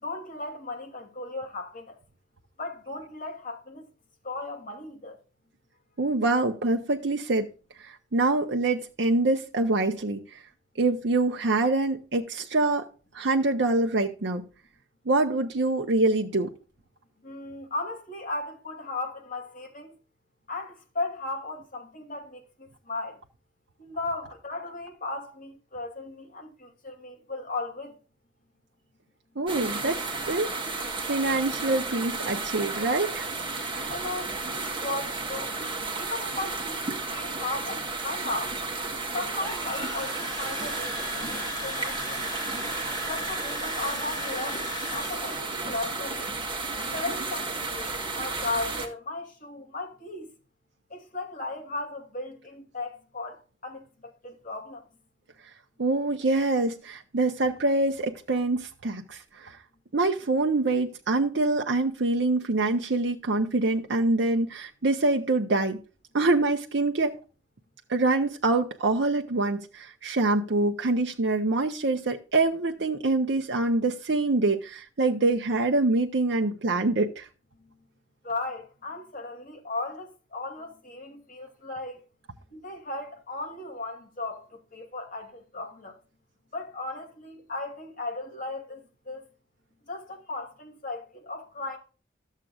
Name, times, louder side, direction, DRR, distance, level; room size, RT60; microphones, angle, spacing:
voice 1, 0.0-2.0 2.6-3.9 4.2-5.2 17.2-20.0 20.5-23.2 23.8-28.0 33.8-34.4 34.8-35.5 36.0-38.6 39.1-42.5 43.0-46.3 46.9-50.3 50.9-54.9 77.6-77.8 78.2-82.0 82.5-86.0 86.5-89.3 89.9-91.8, left 2 dB, 45° left, 2.6 m, -36 dB
voice 2, 6.0-7.5 7.8-10.4 10.8-12.9 13.1-14.4 15.1-16.5 29.4-30.0 30.3-30.5 31.1-33.3 33.6-33.9 55.8-59.6 59.9-65.8 66.1-67.2 67.9-77.3, right 2 dB, 65° right, 0.8 m, -25 dB
sound 1, 29.5-48.9, right 3 dB, 30° right, 1.6 m, -33 dB
sound 2, 39.3-45.6, left 2 dB, 20° left, 1.4 m, -38 dB
13.0 x 7.4 x 2.4 m
head